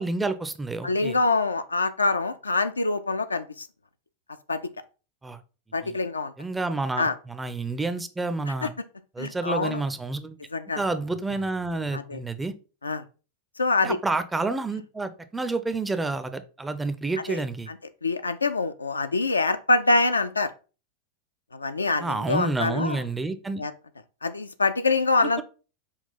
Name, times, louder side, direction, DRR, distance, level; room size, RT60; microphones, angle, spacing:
voice 1, 0.0-1.2 5.2-5.4 5.8-6.0 6.4-8.7 9.2-10.4 10.8-12.5 13.8-17.7 22.0-23.6 25.2-25.4, right 3 dB, 10° right, 10 dB, 0.4 m, -29 dB
voice 2, 0.8-3.7 4.5-4.6 5.7-6.3 7.0-7.1 8.6-8.7 9.2-9.8 10.5-10.8 11.9-12.2 12.8-13.0 13.6-14.0 17.3-17.4 17.7-17.8 18.0-20.5 21.5-23.0 23.6-23.7 24.2-25.4, left 3 dB, 80° left, 10 dB, 0.4 m, -25 dB
5.5 x 2.3 x 4.0 m, 0.34 s
figure-of-eight pair, 90°, 0 cm